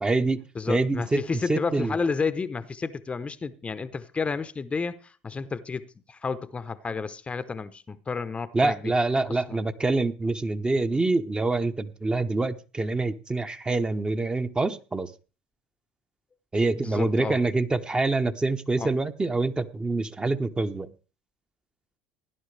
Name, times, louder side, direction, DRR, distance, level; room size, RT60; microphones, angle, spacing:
voice 1, 0.0-0.4 0.7-1.2 1.5-2.0 8.5-15.1 16.5-20.9, right 3 dB, 20° right, 1.1 m, -25 dB
voice 2, 0.5-8.9 9.2-9.6 16.8-17.4 18.8-18.9, left 4 dB, 25° left, 0.8 m, -31 dB
16.5 x 10.5 x 3.3 m
hypercardioid pair, 75°, 5 cm